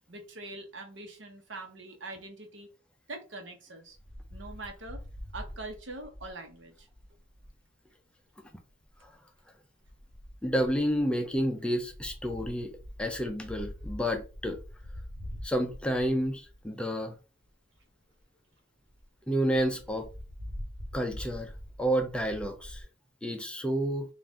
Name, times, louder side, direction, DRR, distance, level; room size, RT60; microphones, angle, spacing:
voice 1, 0.1-2.7 3.1-4.0 4.3-5.0 5.3-6.9, right 2 dB, 70° right, 1.0 m, -43 dB
Wind, 3.9-7.6 8.7-9.1 9.8-16.8 17.4-17.5 17.8-17.9 18.2-18.3 18.6-18.7 18.9-19.0 19.5-22.8, equal, 90° right, 1.2 m, -44 dB
voice 2, 10.4-12.7 13.0-14.6 15.4-17.1 19.3-20.1 20.9-21.5 21.8-22.9 23.2-24.1, equal, 5° left, 0.5 m, -30 dB
3.9 x 2.5 x 3.6 m
head